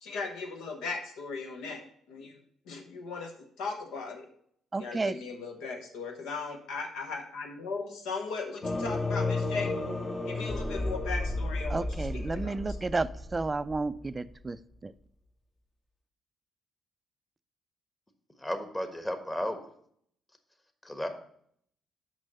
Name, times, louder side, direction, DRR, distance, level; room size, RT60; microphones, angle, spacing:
voice 1, 0.0-1.8 2.1-2.3 2.7-3.3 3.6-4.3 4.8-9.8 10.3-11.9 12.4-12.5, left 4 dB, 70° left, 0.9 m, -37 dB
voice 2, 4.7-5.2 11.7-14.9, right 3 dB, 25° right, 0.4 m, -32 dB
sound 1, 8.6-14.3, left 2 dB, 35° left, 1.1 m, -33 dB
voice 3, 18.4-19.6 20.8-21.1, equal, 15° left, 1.3 m, -33 dB
6.2 x 5.5 x 5.2 m
hypercardioid pair, 50°, 0 cm